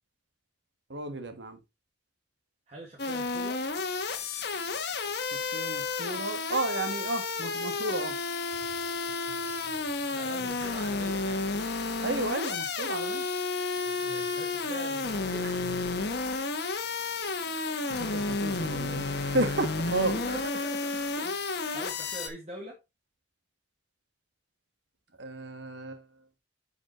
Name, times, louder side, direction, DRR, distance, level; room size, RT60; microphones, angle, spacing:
voice 1, 0.9-1.6 5.5-8.1 12.0-13.2 17.9-20.1 25.2-26.0, right 2 dB, 65° right, 1.5 m, -32 dB
voice 2, 2.7-3.6 10.1-11.5 14.0-15.5 19.9-21.5 21.7-22.8, right 1 dB, 35° right, 1.9 m, -43 dB
sound 1, 3.0-22.3, left 3 dB, 55° left, 1.2 m, -32 dB
sound 2, 8.5-11.6 11.9-12.0 13.8-16.5 17.0-17.9, equal, 85° right, 2.1 m, -51 dB
10.0 x 5.2 x 3.0 m
head